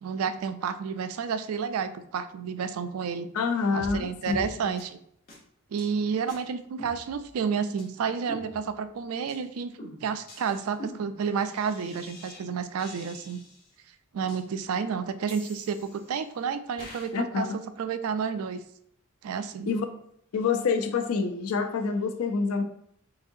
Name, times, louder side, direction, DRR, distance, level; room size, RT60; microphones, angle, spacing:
voice 1, 0.0-3.3 3.7-5.0 5.7-9.7 10.0-13.4 14.1-17.5 17.8-18.6 19.2-19.7, right 6 dB, 75° right, 11 dB, 0.3 m, -30 dB
voice 2, 3.3-4.5 17.1-17.5 19.7-19.9 20.3-22.6, left 5 dB, 80° left, 7 dB, 0.5 m, -27 dB
sound 1, 3.8-4.0 4.3-4.5 4.8-4.9 5.3-5.4 5.8-5.9 6.3-6.4 6.8-7.4 7.8-7.9 8.3-8.9 9.3-9.4 9.8-12.4 12.8-13.7 14.3-14.4 15.3-16.2 16.8-17.1, left 1 dB, 45° left, 1.2 m, -44 dB
3.9 x 3.6 x 2.6 m, 0.69 s
head